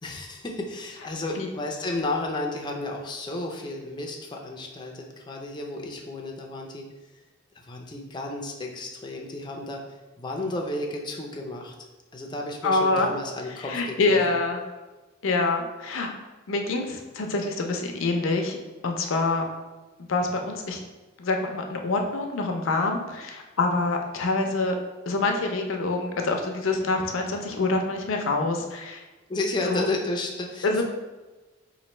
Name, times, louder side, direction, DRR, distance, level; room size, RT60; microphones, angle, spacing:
voice 1, 0.0-6.8 7.6-9.8 10.2-11.7 12.1-14.2 29.3-30.8, left 2 dB, 20° left, 0 dB, 0.4 m, -32 dB
voice 2, 12.6-13.1 13.6-14.6 15.2-16.1 16.5-18.6 18.8-19.4 20.1-20.8 21.2-24.8 25.1-29.0 29.6-29.9 30.6-30.8, left 3 dB, 75° left, 3 dB, 0.5 m, -26 dB
3.0 x 2.6 x 4.2 m, 1.2 s
head